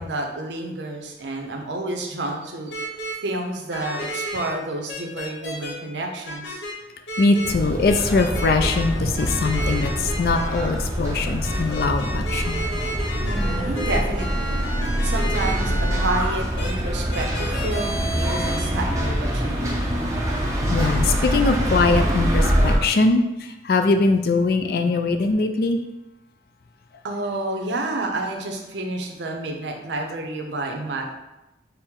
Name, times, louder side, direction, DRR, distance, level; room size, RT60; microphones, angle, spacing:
voice 1, 0.0-6.6 13.2-14.6 15.0-19.8 24.8-25.0 27.0-31.1, right 2 dB, 85° right, 2 dB, 0.6 m, -30 dB
sound 1, 2.7-3.1 3.7-4.5 4.9-5.7 6.2-6.7 7.1-7.5 7.9-8.9 9.2-10.6 11.4-16.2 16.6-16.7 17.1-18.6, equal, 90° left, 0.9 m, -32 dB
voice 2, 7.2-12.6 20.7-23.2 23.6-25.8, left 3 dB, 55° left, 6 dB, 0.3 m, -21 dB
sound 2, 7.4-22.8, equal, 20° right, 0.5 m, -24 dB
4.4 x 2.1 x 3.6 m, 0.95 s
head